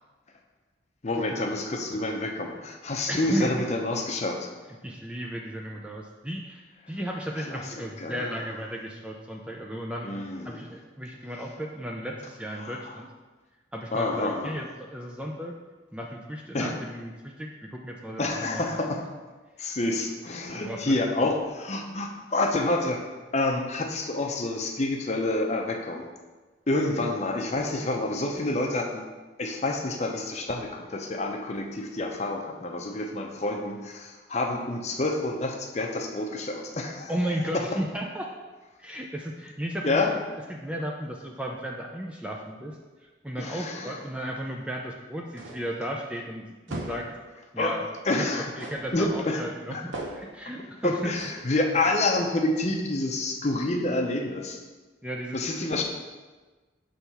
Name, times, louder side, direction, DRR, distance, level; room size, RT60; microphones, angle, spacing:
voice 1, 1.0-4.5 7.5-8.3 10.0-10.6 12.6-13.0 13.9-14.6 16.5-16.8 18.2-19.0 19.6-23.0 23.3-26.1 26.7-29.1 29.4-37.1 37.5-37.6 39.8-40.1 43.4-44.0 47.6-47.7 48.0-48.5 48.9-49.4 49.7-49.8 50.8-54.6 55.3-55.8, left 2 dB, 35° left, 2 dB, 0.6 m, -28 dB
voice 2, 3.1-3.6 4.8-10.1 10.5-13.1 13.7-15.6 15.9-18.7 20.5-21.3 37.1-38.3 38.8-40.0 40.5-47.1 47.5-47.9 48.2-51.1 55.0-55.8, equal, 5° right, 0 dB, 0.4 m, -35 dB
sound 1, 45.4-45.8 46.7-47.2 48.6-49.0 49.9-50.4 51.2-51.5, right 2 dB, 85° right, 0.9 m, -38 dB
6.2 x 3.4 x 5.5 m, 1.3 s
head